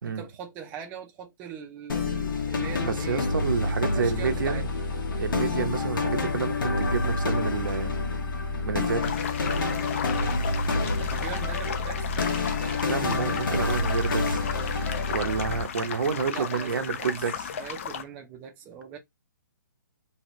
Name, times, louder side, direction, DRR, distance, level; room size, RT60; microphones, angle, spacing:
voice 1, 0.0-3.2 3.8-4.7 10.8-12.4 16.3-17.1 17.5-19.0, right 7 dB, 15° right, 0.5 m, -41 dB
sound 1, 1.9-15.6, left 3 dB, 80° left, 1.0 m, -28 dB
voice 2, 2.8-4.7 5.2-7.9 8.7-9.2 12.9-14.4 15.1-17.5, right 6 dB, 75° right, 0.7 m, -29 dB
sound 2, 9.0-18.0, left 8 dB, 40° left, 0.4 m, -35 dB
2.8 x 2.8 x 3.0 m
hypercardioid pair, 160°, 11 cm